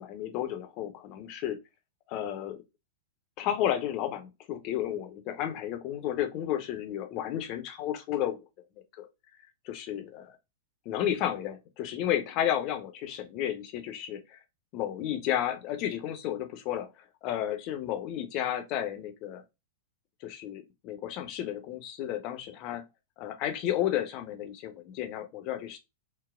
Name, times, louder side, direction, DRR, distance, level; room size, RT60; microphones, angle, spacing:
voice 1, 0.0-1.6 2.1-2.6 3.4-8.4 9.0-9.1 9.6-10.3 10.9-14.4 14.7-16.9 17.2-19.4 20.2-22.9 23.2-25.8, left 11 dB, 40° left, 0.6 m, -32 dB
4.0 x 2.0 x 2.4 m
figure-of-eight pair, 100°, 0 cm